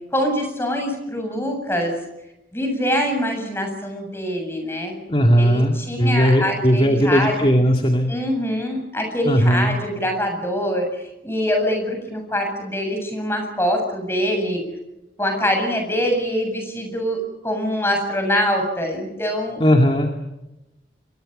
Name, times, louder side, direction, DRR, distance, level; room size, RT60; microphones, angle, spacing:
voice 1, 0.1-1.9 2.5-4.9 5.4-7.5 8.1-14.6 15.2-19.6, equal, 15° left, 4 dB, 7.6 m, -24 dB
voice 2, 5.1-8.1 9.2-9.7 19.6-20.1, equal, 30° left, 3 dB, 2.4 m, -17 dB
28.5 x 23.5 x 6.8 m, 0.95 s
head